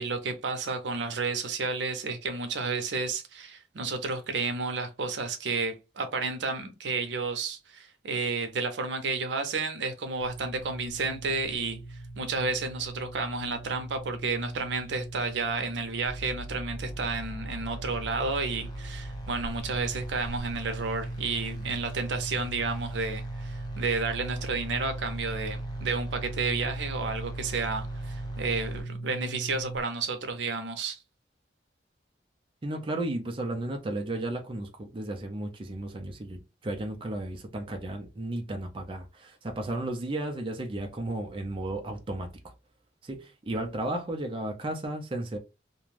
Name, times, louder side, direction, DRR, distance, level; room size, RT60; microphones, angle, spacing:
voice 1, 0.0-31.0, right 4 dB, 80° right, 0.6 m, -31 dB
sound 1, 10.2-29.8, right 2 dB, 60° left, 0.8 m, -40 dB
sound 2, 16.1-28.8, equal, 25° left, 0.6 m, -41 dB
voice 2, 32.6-42.5 43.0-45.4, right 1 dB, 30° right, 0.4 m, -34 dB
2.5 x 2.2 x 3.1 m
head